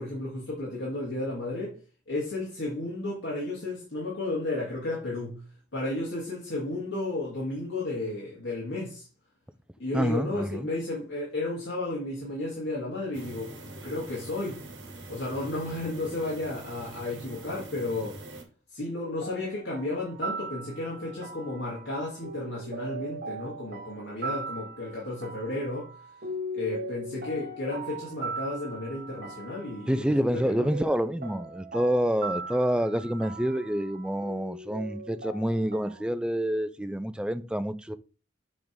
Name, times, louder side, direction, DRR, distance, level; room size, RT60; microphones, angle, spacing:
voice 1, 0.0-1.8 2.1-5.4 5.7-9.1 9.8-14.6 15.1-18.2 18.7-26.1 26.5-30.7, left 2 dB, 80° left, 2.5 m, -33 dB
voice 2, 9.9-10.7 29.9-37.9, equal, 5° right, 0.4 m, -27 dB
sound 1, 13.1-18.4, right 2 dB, 90° right, 1.9 m, -44 dB
sound 2, 19.0-36.0, right 2 dB, 55° right, 1.0 m, -39 dB
7.3 x 3.6 x 4.7 m
head